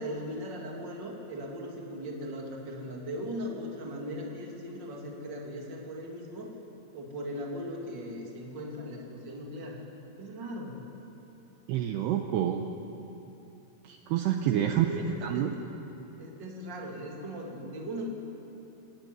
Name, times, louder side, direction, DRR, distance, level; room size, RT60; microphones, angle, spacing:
voice 1, 0.0-6.5 6.9-9.8 10.2-10.9 14.5-15.5 16.2-18.1, equal, 30° right, -1 dB, 2.8 m, -38 dB
voice 2, 11.7-12.7 13.8-14.9 15.2-15.5, right 11 dB, 80° right, 4 dB, 2.6 m, -28 dB
20.0 x 18.0 x 9.6 m, 3.0 s
omnidirectional pair, 5.6 m